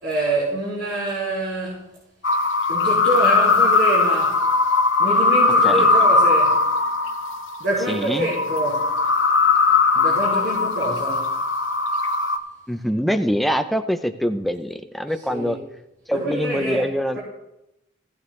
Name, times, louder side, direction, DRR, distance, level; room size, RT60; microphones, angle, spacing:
voice 1, 0.0-1.9 2.7-4.4 5.0-6.6 7.6-8.9 9.9-11.3 15.3-15.6 16.1-16.9, right 1 dB, 70° right, 4.4 m, -26 dB
sound 1, 2.2-12.4, left 3 dB, 90° left, 0.9 m, -19 dB
voice 2, 7.9-8.3 12.7-15.6 16.1-17.2, equal, ahead, 0.5 m, -24 dB
16.0 x 9.3 x 3.2 m
head